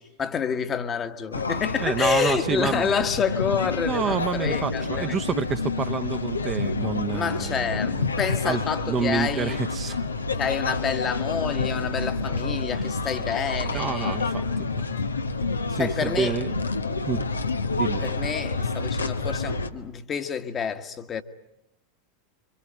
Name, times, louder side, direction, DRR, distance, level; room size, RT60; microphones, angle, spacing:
voice 1, 0.0-5.2 7.1-9.6 10.3-14.3 15.8-16.4 18.0-21.2, left 7 dB, 25° left, 1.5 m, -28 dB
sound 1, 1.3-19.7, left 3 dB, 80° left, 1.2 m, -28 dB
voice 2, 1.8-2.9 3.8-8.1 8.4-8.6 8.8-10.1 12.7-12.9 13.7-14.9 15.7-16.5 17.0-17.2 17.8-18.0, right 6 dB, 25° right, 1.2 m, -28 dB
25.5 x 25.0 x 8.9 m
figure-of-eight pair, 85°, 0 cm